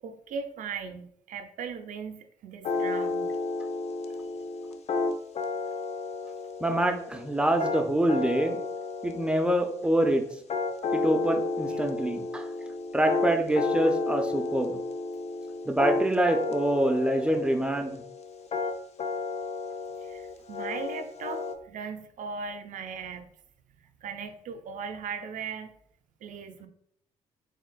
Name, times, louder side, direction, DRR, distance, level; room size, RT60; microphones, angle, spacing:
voice 1, 0.0-3.4 11.7-11.8 20.0-23.3 23.8-25.7 26.2-26.7, right 5 dB, 65° right, 8 dB, 0.5 m, -38 dB
sound 1, 2.6-21.5, left 3 dB, 50° left, 0.5 m, -32 dB
voice 2, 6.6-8.6 9.0-10.2 10.9-12.5 12.9-14.8 15.7-18.0, right 1 dB, 5° right, 5 dB, 0.5 m, -25 dB
3.8 x 3.6 x 2.2 m, 0.70 s
supercardioid pair, 65°, 15 cm